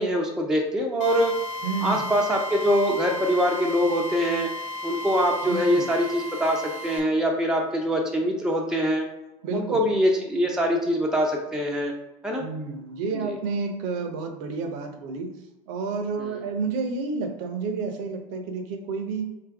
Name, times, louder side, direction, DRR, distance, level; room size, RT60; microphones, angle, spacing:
voice 1, 0.0-1.3 1.8-4.5 4.8-9.1 9.5-11.9 12.2-12.5 13.2-13.4 16.2-16.4, equal, 5° right, 0 dB, 0.6 m, -24 dB
Drill, 1.0-7.0, left 1 dB, 45° left, 0.7 m, -34 dB
voice 2, 1.6-2.0 5.4-5.9 9.4-9.8 12.4-15.3 15.7-19.3, right 4 dB, 60° right, 5 dB, 0.8 m, -30 dB
3.4 x 3.2 x 3.4 m, 0.98 s
hypercardioid pair, 80°, 18 cm